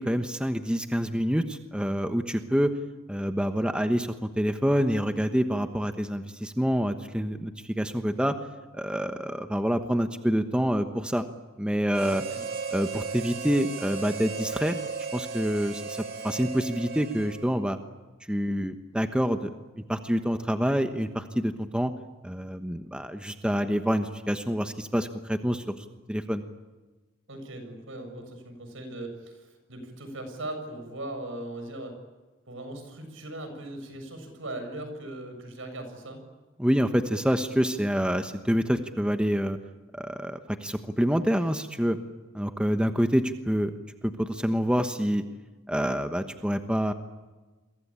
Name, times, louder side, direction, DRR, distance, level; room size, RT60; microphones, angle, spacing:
voice 1, 0.0-2.7 3.1-8.3 8.7-11.2 11.6-12.2 12.7-14.8 15.1-17.8 18.3-19.5 19.9-21.9 22.2-26.4 36.6-39.6 39.9-42.0 42.3-43.7 44.0-45.2 45.7-46.9, equal, 5° right, 7 dB, 1.1 m, -27 dB
Harmonica, 11.9-17.7, right 5 dB, 50° right, 3.6 m, -36 dB
voice 2, 27.3-32.0 32.5-36.2, right 1 dB, 70° right, 7 dB, 7.4 m, -39 dB
29.0 x 23.0 x 8.8 m, 1.2 s
head